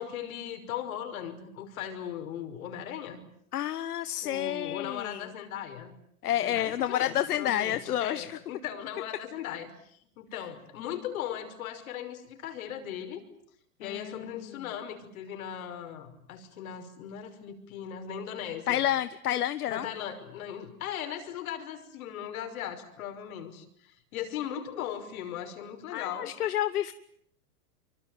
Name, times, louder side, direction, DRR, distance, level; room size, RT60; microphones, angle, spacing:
voice 1, 0.0-3.2 4.2-5.9 6.3-13.2 13.8-18.8 19.7-26.3, left 9 dB, 70° left, 7 dB, 5.8 m, -38 dB
voice 2, 3.5-5.3 6.2-8.4 13.8-14.5 18.7-19.9 25.9-26.9, left 12 dB, 90° left, 13 dB, 1.3 m, -30 dB
25.5 x 24.5 x 9.4 m, 0.69 s
hypercardioid pair, 135°, 44 cm